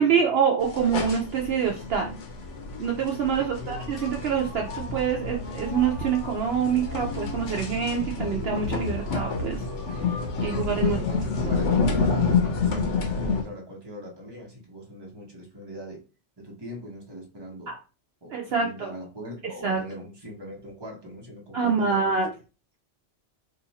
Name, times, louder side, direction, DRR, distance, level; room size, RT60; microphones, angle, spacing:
voice 1, 0.0-2.2 2.8-9.6 10.4-11.0 17.7-17.8 18.3-18.9 19.6-19.8 21.5-22.3, right 6 dB, 65° right, 1 dB, 0.8 m, -26 dB
sound 1, 0.6-13.4, left 4 dB, 80° left, 1.1 m, -29 dB
voice 2, 3.3-4.1 10.8-16.0 16.4-17.7 18.2-22.2, equal, 20° right, -1 dB, 1.0 m, -41 dB
3.1 x 2.5 x 4.0 m, 0.33 s
omnidirectional pair, 1.2 m